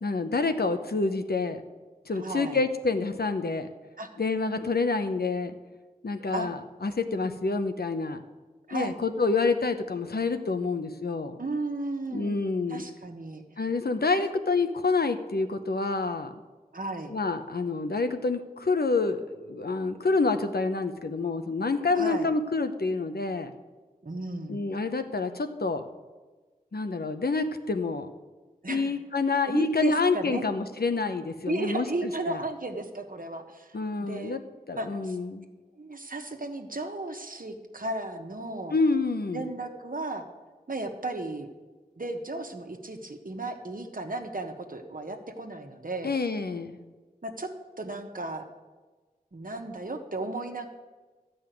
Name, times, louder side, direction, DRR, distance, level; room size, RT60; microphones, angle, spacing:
voice 1, 0.0-1.6 2.1-3.7 4.2-5.5 6.0-8.2 8.7-11.3 12.1-12.8 13.6-16.3 17.1-23.5 24.5-25.8 26.7-28.1 28.7-32.4 33.7-34.4 34.7-35.5 38.7-39.4 46.0-46.8, left 3 dB, 85° left, 8 dB, 0.9 m, -28 dB
voice 2, 2.1-2.6 4.0-4.1 6.3-6.5 8.7-9.0 11.4-12.4 12.7-13.4 16.7-17.1 21.9-22.3 24.0-24.6 28.6-29.0 29.5-30.5 31.5-34.4 34.8-35.2 35.8-38.7 39.3-40.3 40.7-41.5 42.0-46.1 47.2-47.5 47.8-48.5 49.3-50.7, right 2 dB, 65° right, 4 dB, 1.3 m, -34 dB
13.0 x 5.5 x 9.2 m, 1.3 s
wide cardioid pair, 55°, 16 cm